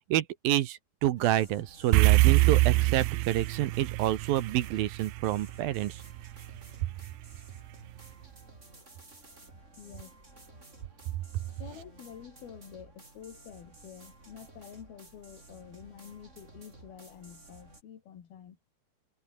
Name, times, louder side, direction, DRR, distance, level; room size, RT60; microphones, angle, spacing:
voice 1, 0.1-6.0, right 13 dB, 75° right, 2.8 m, -28 dB
sound 1, 1.2-17.8, right 2 dB, 20° right, 5.0 m, -54 dB
sound 2, 1.9-6.4, right 20 dB, 90° right, 2.6 m, -24 dB
voice 2, 9.8-10.1 11.6-18.6, left 9 dB, 75° left, 4.5 m, -48 dB
omnidirectional pair, 4.4 m